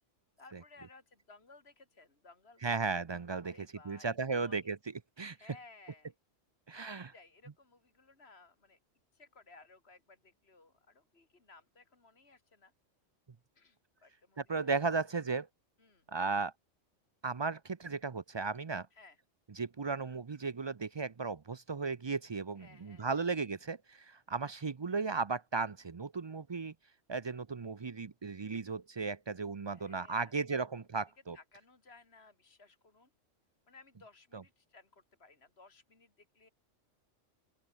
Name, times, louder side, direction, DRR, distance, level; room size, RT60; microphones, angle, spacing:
voice 1, 0.4-2.6 3.4-4.7 5.3-6.1 6.8-8.8 9.1-12.7 13.5-14.7 15.8-16.1 18.9-19.2 22.6-23.2 29.7-30.5 31.3-33.1 33.7-36.5, left 3 dB, 55° left, 3.3 m, -59 dB
voice 2, 2.6-4.8 5.2-5.4 6.7-7.1 14.4-15.5 16.1-16.5 17.2-18.9 19.6-26.7 27.1-31.4 34.3-34.4, right 4 dB, 40° right, 0.4 m, -35 dB
open air
omnidirectional pair, 1.3 m